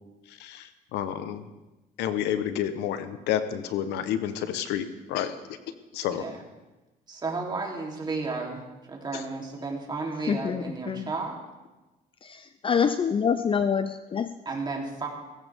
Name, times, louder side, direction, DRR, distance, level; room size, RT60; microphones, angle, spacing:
voice 1, 0.3-1.4 2.0-5.4 5.9-6.2, left 10 dB, 90° left, 11 dB, 1.1 m, -30 dB
voice 2, 7.1-8.6 8.9-11.4 14.4-15.1, right 3 dB, 25° right, -1 dB, 3.4 m, -33 dB
voice 3, 10.3-11.1 12.2-14.3, left 6 dB, 30° left, 11 dB, 0.6 m, -26 dB
18.5 x 16.0 x 3.6 m, 1.1 s
cardioid pair, 110°, 17 cm